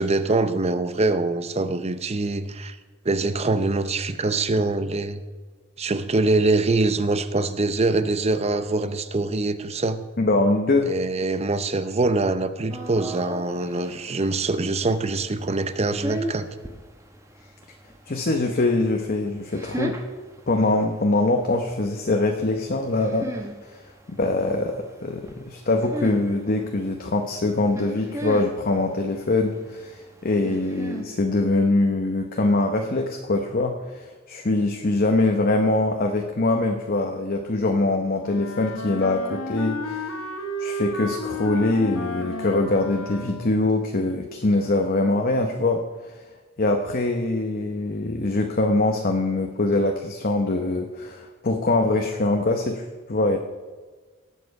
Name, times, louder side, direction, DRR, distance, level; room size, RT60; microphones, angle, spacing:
voice 1, 0.0-2.8 3.0-5.2 5.8-10.0 10.8-16.5, right 2 dB, 30° right, 11 dB, 0.7 m, -24 dB
voice 2, 10.2-10.9 18.1-20.0 20.5-23.4 24.1-40.1 40.6-45.8 46.6-53.4, left 2 dB, 45° left, 3 dB, 0.9 m, -23 dB
sound 1, 12.7-31.0, equal, 15° right, 1.2 m, -38 dB
Wind instrument woodwind instrument, 38.2-43.6, left 1 dB, 75° left, 1.3 m, -32 dB
18.0 x 7.6 x 4.7 m, 1.4 s
head